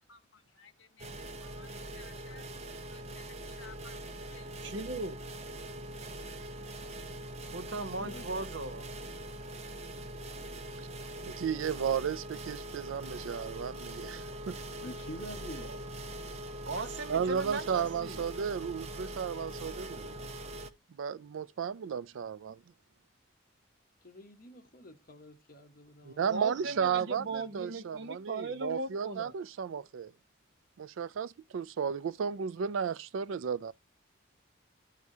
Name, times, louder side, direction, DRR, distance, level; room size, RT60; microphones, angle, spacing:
voice 1, 0.1-4.6 8.0-8.2 14.8-15.7, left 2 dB, 70° left, 1.3 m, -49 dB
sound 1, 1.0-20.7, right 1 dB, 30° right, 0.6 m, -42 dB
voice 2, 4.6-5.2 7.5-8.9 15.6-15.8 16.6-18.3 26.3-29.3, right 3 dB, 60° right, 0.8 m, -38 dB
voice 3, 11.2-14.6 17.1-20.2 21.0-22.6 26.1-30.1 30.8-33.7, right 7 dB, 75° right, 0.4 m, -34 dB
voice 4, 24.0-27.8, left 1 dB, 45° left, 1.2 m, -56 dB
13.0 x 4.8 x 2.7 m
head